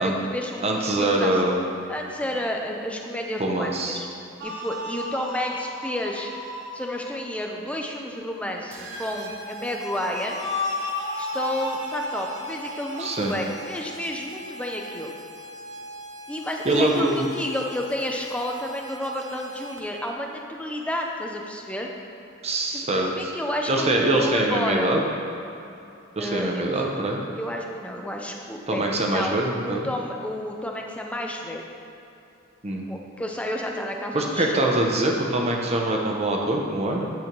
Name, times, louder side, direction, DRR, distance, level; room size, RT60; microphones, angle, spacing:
voice 1, 0.0-1.4 1.9-4.1 4.4-6.3 6.7-10.4 11.2-15.1 16.3-21.9 22.7-22.9 23.2-24.9 26.2-26.7 27.4-29.4 29.6-31.7 32.9-34.6, left 1 dB, 5° left, 1 dB, 0.6 m, -31 dB
voice 2, 0.6-1.7 3.4-4.0 13.0-13.3 16.6-17.3 22.4-23.3 23.7-25.0 26.2-27.2 28.7-29.9 32.6-32.8 34.1-37.1, right 1 dB, 35° right, 0 dB, 0.9 m, -24 dB
sound 1, 4.4-7.1 10.1-13.1, left 2 dB, 60° right, 1.0 m, -33 dB
sound 2, 8.7-20.1, equal, 80° right, 1.0 m, -41 dB
9.4 x 3.4 x 6.0 m, 2.8 s
head